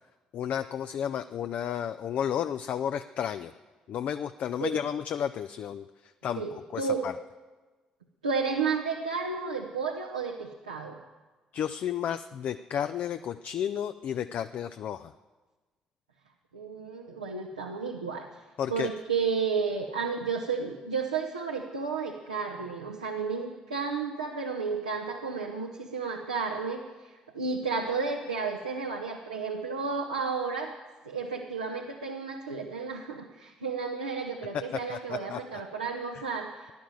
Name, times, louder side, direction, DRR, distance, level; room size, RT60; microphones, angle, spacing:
voice 1, 0.3-3.5 3.9-5.9 6.2-6.4 6.7-7.1 11.5-15.1 18.6-18.9 34.9-35.4, left 9 dB, 50° left, 9 dB, 0.5 m, -32 dB
voice 2, 6.4-7.1 8.2-11.0 16.5-18.3 18.7-30.7 31.0-36.7, right 5 dB, 80° right, 0 dB, 1.0 m, -32 dB
16.0 x 11.5 x 7.6 m, 1.3 s
figure-of-eight pair, 45°, 3 cm